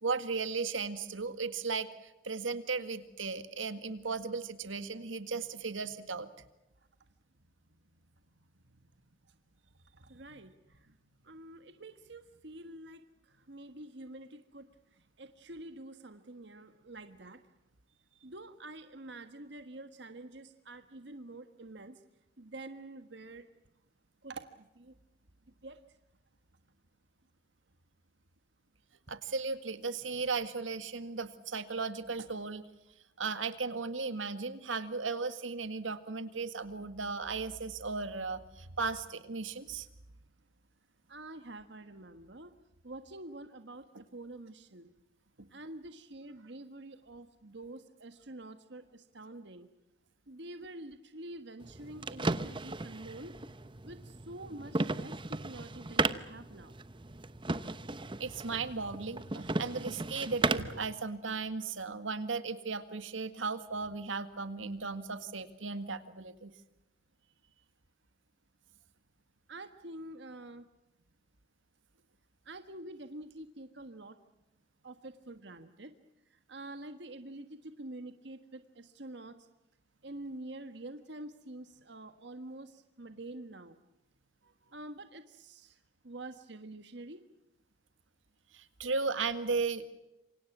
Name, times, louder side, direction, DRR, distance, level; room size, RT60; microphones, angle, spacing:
voice 1, 0.0-1.9 2.2-6.3 29.1-32.7 33.2-39.9 58.2-66.5 88.5-89.9, right 4 dB, 85° right, 11 dB, 2.0 m, -36 dB
voice 2, 9.9-10.5 11.2-13.0 13.5-14.7 15.2-17.4 18.2-22.0 22.4-23.4 24.2-24.9 25.6-25.8 41.1-42.5 42.8-43.8 44.1-44.9 45.5-49.7 50.3-53.3 53.8-56.7 69.5-70.7 72.4-74.2 74.8-75.9 76.5-79.3 80.0-83.8 84.4-85.8 86.0-87.2, right 2 dB, 60° right, 9 dB, 1.5 m, -47 dB
sound 1, 51.6-60.8, right 3 dB, 25° right, 0.9 m, -35 dB
28.0 x 25.0 x 6.1 m, 0.94 s
head